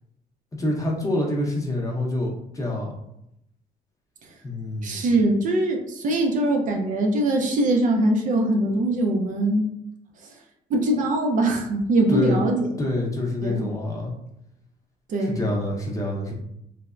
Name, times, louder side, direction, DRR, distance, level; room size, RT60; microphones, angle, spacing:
voice 1, 0.5-2.9 4.4-5.0 12.1-12.4 12.8-14.1 15.2-16.3, left 1 dB, 20° left, -2 dB, 0.7 m, -26 dB
voice 2, 4.8-9.7 10.7-12.7 13.4-13.7 15.1-15.4, right 1 dB, 50° right, 2 dB, 0.4 m, -22 dB
3.1 x 2.0 x 2.4 m, 0.79 s
cardioid pair, 110°, 17 cm